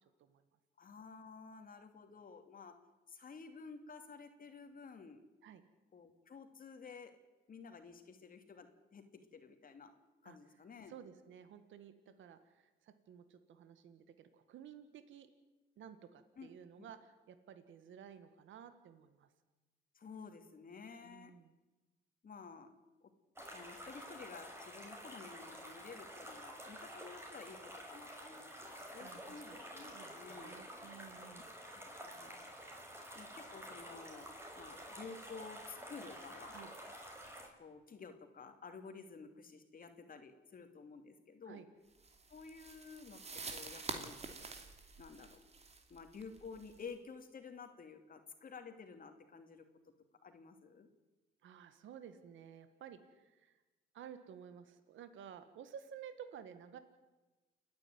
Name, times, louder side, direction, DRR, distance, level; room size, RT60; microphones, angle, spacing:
voice 1, 0.8-2.7 3.1-5.2 5.9-7.1 7.5-9.0 9.3-9.9 10.2-10.9 16.4-16.9 19.9-21.3 22.2-22.7 23.0-23.1 23.4-30.5 31.7-32.4 33.1-34.3 34.6-36.6 37.6-41.6 42.3-43.2 43.5-44.2 45.0-45.4 45.9-49.6 50.2-50.9, left 5 dB, 45° left, 6 dB, 2.8 m, -52 dB
voice 2, 10.9-15.3 15.8-19.3 21.0-21.5 29.0-29.7 29.9-31.5 36.5-36.7 41.5-41.7 51.4-53.6 53.9-56.8, right 8 dB, 75° right, 10 dB, 1.7 m, -54 dB
sound 1, 23.4-37.5, equal, 10° right, 5.8 m, -50 dB
sound 2, 42.0-46.9, right 3 dB, 35° right, 2.8 m, -48 dB
29.0 x 10.5 x 9.5 m, 1.2 s
cardioid pair, 90°, 20 cm